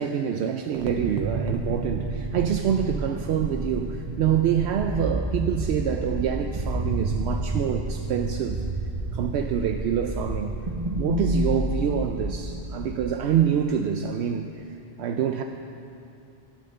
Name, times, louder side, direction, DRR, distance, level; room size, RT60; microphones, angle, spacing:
voice 1, 0.0-8.6 9.1-10.5 11.0-14.7 15.0-15.4, right 8 dB, 80° right, 5 dB, 0.8 m, -26 dB
sound 1, 0.8-13.1, right 2 dB, 35° right, 1.0 m, -30 dB
12.0 x 10.0 x 6.6 m, 2.7 s
omnidirectional pair, 1.1 m